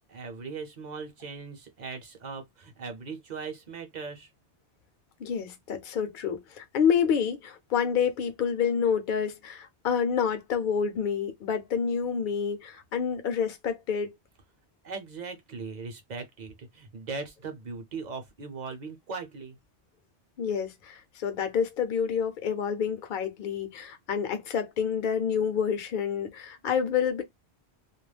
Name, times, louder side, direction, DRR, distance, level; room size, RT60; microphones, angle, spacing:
voice 1, 0.0-4.3 14.8-19.6, right 4 dB, 45° right, 0.8 m, -39 dB
voice 2, 5.2-14.1 20.4-27.2, left 7 dB, 55° left, 0.7 m, -28 dB
2.4 x 2.0 x 3.2 m
omnidirectional pair, 1.1 m